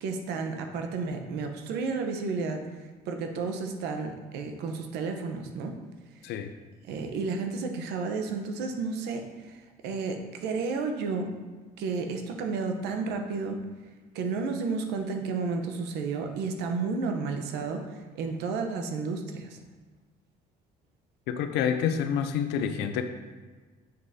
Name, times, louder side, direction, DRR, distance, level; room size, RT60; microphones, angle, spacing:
voice 1, 0.0-5.8 6.9-11.4 11.8-13.6 14.1-19.6, right 4 dB, 85° right, 5 dB, 0.8 m, -32 dB
voice 2, 21.3-23.0, left 8 dB, 85° left, 8 dB, 0.5 m, -28 dB
7.2 x 6.2 x 2.7 m, 1.3 s
cardioid pair, 110°, 17 cm